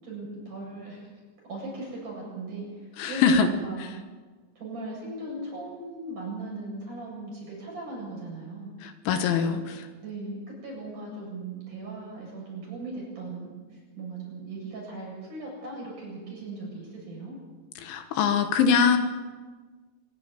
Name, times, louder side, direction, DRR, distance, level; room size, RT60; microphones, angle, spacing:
voice 1, 0.0-1.1 1.4-3.9 4.6-8.7 10.0-13.5 14.0-17.4, right 2 dB, 40° right, -3 dB, 9.4 m, -38 dB
voice 2, 3.0-3.5 8.8-9.6 17.8-19.0, left 6 dB, 80° left, 7 dB, 3.7 m, -22 dB
26.5 x 11.5 x 9.7 m, 1.4 s
omnidirectional pair, 5.6 m